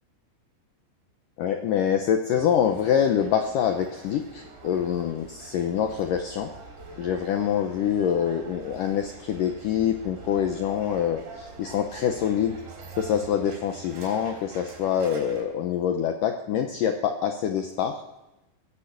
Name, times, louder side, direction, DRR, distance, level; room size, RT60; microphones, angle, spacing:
voice 1, 1.4-6.5 7.0-12.6 13.0-18.0, left 8 dB, 85° left, 5 dB, 1.9 m, -25 dB
sound 1, 2.3-15.4, right 4 dB, 80° right, 5.7 m, -45 dB
18.5 x 8.7 x 8.0 m, 0.95 s
omnidirectional pair, 5.1 m